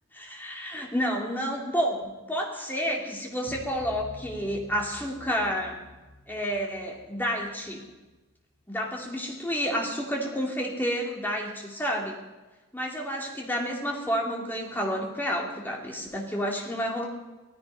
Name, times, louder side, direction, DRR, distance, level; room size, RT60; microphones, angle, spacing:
voice 1, 0.1-5.8 6.3-7.8 8.7-12.1 12.7-17.1, equal, 10° left, -1 dB, 2.5 m, -30 dB
sound 1, 3.5-7.9, left 1 dB, 15° right, 7.2 m, -48 dB
17.5 x 14.0 x 5.5 m, 1.2 s
head